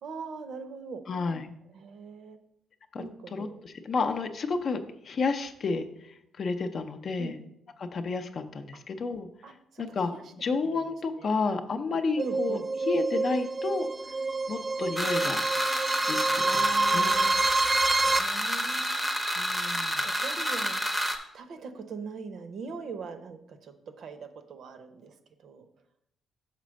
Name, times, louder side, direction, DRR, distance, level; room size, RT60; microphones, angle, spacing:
voice 1, 0.0-1.0 1.7-2.4 3.0-3.6 7.2-7.3 9.4-10.2 10.5-10.9 11.2-11.3 12.2-12.6 16.5-17.4 18.0-19.0 19.6-20.8 21.3-25.1 25.4-25.7, right 5 dB, 55° right, 8 dB, 0.7 m, -41 dB
voice 2, 1.1-1.5 2.9-3.0 3.3-5.8 6.4-7.4 7.8-9.3 9.8-10.1 10.4-12.6 12.9-13.9 14.5-15.4 16.0-17.1 19.4-20.0, left 4 dB, 40° left, 7 dB, 0.5 m, -31 dB
sound 1, 12.2-18.2, right 3 dB, 25° right, 0.3 m, -27 dB
sound 2, 15.0-21.2, equal, 5° right, 0.7 m, -29 dB
5.9 x 4.1 x 6.3 m, 0.77 s
cardioid pair, 155°, 0 cm